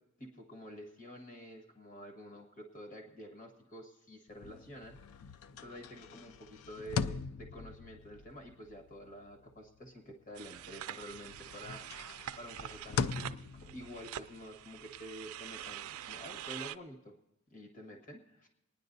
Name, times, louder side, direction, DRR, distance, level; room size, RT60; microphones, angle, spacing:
voice 1, 0.2-11.8 12.4-17.1 17.5-18.5, equal, 40° left, 2 dB, 1.6 m, -49 dB
sound 1, 4.3-10.8 11.1-16.5, left 6 dB, 85° left, 0.4 m, -42 dB
sound 2, 10.3-16.8, right 11 dB, 90° right, 0.4 m, -45 dB
28.0 x 10.0 x 2.7 m, 0.87 s
head